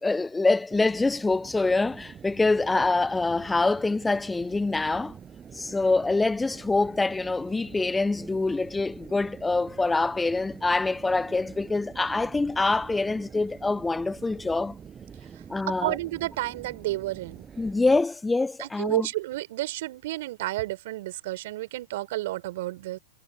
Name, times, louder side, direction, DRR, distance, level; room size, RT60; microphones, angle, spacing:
voice 1, 0.0-5.1 5.6-14.8 15.5-16.0 17.6-19.1, left 3 dB, 10° left, 0.4 m, -25 dB
Subway metro underground, 0.7-18.0, right 7 dB, 20° right, 8.0 m, -46 dB
voice 2, 15.7-17.5 18.6-23.0, right 17 dB, 60° right, 4.1 m, -31 dB
hypercardioid pair, 115°, 0 cm